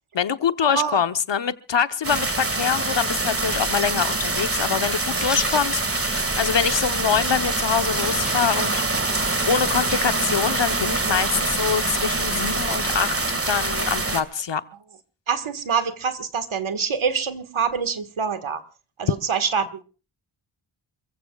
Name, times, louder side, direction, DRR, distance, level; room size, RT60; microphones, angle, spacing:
voice 1, 0.1-8.8 9.5-14.6, left 7 dB, 60° left, 1.0 m, -24 dB
voice 2, 0.7-1.0 5.1-5.2 15.3-18.6 19.0-19.8, right 6 dB, 70° right, 1.7 m, -25 dB
sound 1, 2.0-14.2, right 2 dB, 25° right, 2.0 m, -25 dB
sound 2, 5.1-9.5, equal, ahead, 3.4 m, -39 dB
28.5 x 15.5 x 2.4 m
cardioid pair, 55°, 49 cm